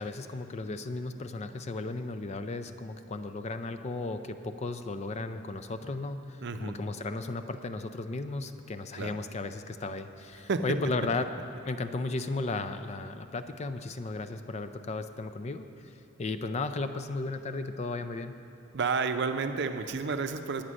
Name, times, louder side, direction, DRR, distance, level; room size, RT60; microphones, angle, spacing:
voice 1, 0.0-11.3 11.7-15.9 16.2-18.4, left 3 dB, 35° left, 9 dB, 0.4 m, -35 dB
voice 2, 6.4-6.8 8.9-9.2 10.5-10.8 18.7-20.6, right 4 dB, 60° right, 8 dB, 0.6 m, -31 dB
9.6 x 8.7 x 6.2 m, 2.7 s
head